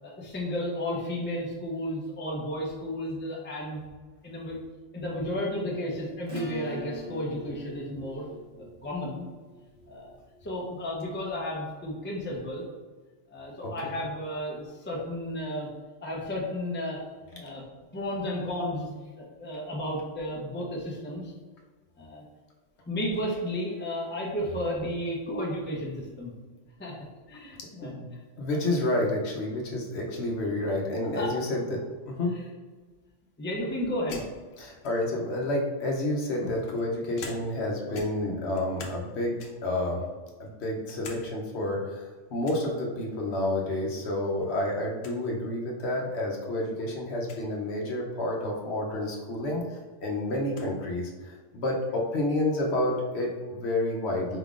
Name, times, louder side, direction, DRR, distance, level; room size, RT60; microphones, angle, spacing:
voice 1, 0.0-3.8 4.2-4.6 4.9-8.2 8.8-9.3 9.9-10.2 10.4-12.6 13.3-15.7 16.0-17.0 17.4-17.6 17.9-18.9 19.2-21.3 22.0-22.2 22.9-26.3 26.8-26.9 27.3-28.0 31.1-31.3 33.4-34.2, left 1 dB, 10° left, -3 dB, 0.6 m, -33 dB
Acoustic guitar / Strum, 6.2-11.2, right 1 dB, 65° right, 1.3 m, -44 dB
voice 2, 13.6-13.9 17.3-17.4 27.8-28.1 28.4-32.3 34.6-40.0 40.4-54.4, left 1 dB, 65° left, -1 dB, 1.0 m, -30 dB
sound 1, 34.1-35.3 36.1-37.7 37.9-39.1 39.4-39.8 40.3-41.2 41.6-41.7 42.4-42.7 44.1-44.5 44.7-44.8 45.0-45.2 46.0-46.1 47.2-47.5 49.1-49.2 49.6-50.7, left 4 dB, 90° left, 1.0 m, -45 dB
4.9 x 3.5 x 2.4 m, 1.4 s
omnidirectional pair, 1.2 m